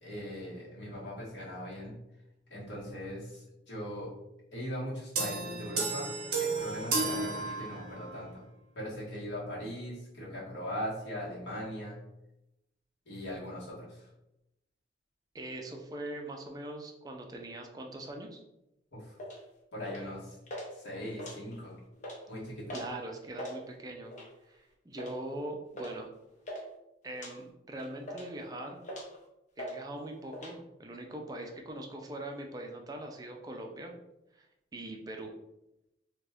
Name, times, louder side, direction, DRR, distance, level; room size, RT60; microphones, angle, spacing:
voice 1, 0.0-1.9 2.5-4.1 4.5-6.1 6.4-8.4 8.7-12.0 13.0-14.1 18.9-19.2 19.7-20.4 20.7-21.7 22.3-22.7, equal, 75° left, -6 dB, 1.3 m, -40 dB
sound 1, 5.2-8.1, right 3 dB, 55° right, 0.7 m, -33 dB
voice 2, 15.3-18.4 22.7-24.1 24.5-26.1 27.0-28.8 29.6-34.0 34.3-34.5 34.7-35.3, right 1 dB, 20° right, 2 dB, 0.4 m, -42 dB
sound 2, 19.2-19.4 19.9-20.2 20.5-20.7 21.1-21.7 22.0-22.2 22.7-22.9 23.2-23.6 24.1-24.4 25.0-25.2 25.8-26.0 26.2-26.6 27.1-27.3 27.8-28.4 28.8-29.2 29.6-29.8 30.0-30.5, equal, 40° left, 0.6 m, -41 dB
2.5 x 2.4 x 3.4 m, 0.88 s
head